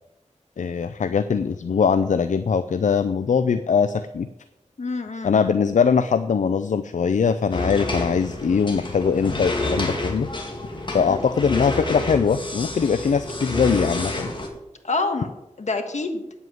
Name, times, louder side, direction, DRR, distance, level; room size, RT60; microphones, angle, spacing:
voice 1, 0.6-4.3 5.2-10.3 10.9-14.3, left 6 dB, 85° left, 11 dB, 0.5 m, -21 dB
voice 2, 4.8-5.5 10.9-11.2 14.8-15.3 15.6-16.2, left 3 dB, 65° left, 6 dB, 1.6 m, -27 dB
sound 1, 7.5-14.5, left 2 dB, 40° left, 2.2 m, -29 dB
9.3 x 8.1 x 7.8 m, 0.94 s
wide cardioid pair, 80°, 13 cm